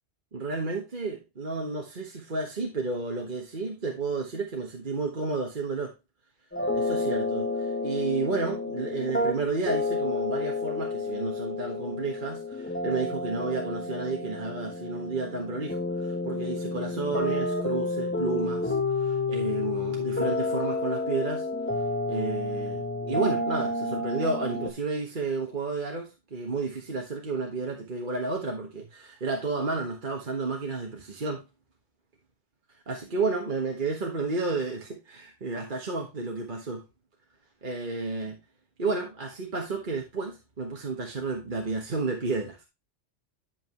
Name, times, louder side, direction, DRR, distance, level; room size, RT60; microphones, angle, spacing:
voice 1, 0.3-5.9 6.7-7.5 7.8-18.7 19.0-21.5 22.1-31.4 32.9-36.8 37.6-38.4 38.8-42.6, right 3 dB, 45° right, 1.5 m, -31 dB
sound 1, 6.5-24.7, left 2 dB, 10° left, 0.9 m, -30 dB
10.5 x 5.5 x 3.0 m
omnidirectional pair, 1.2 m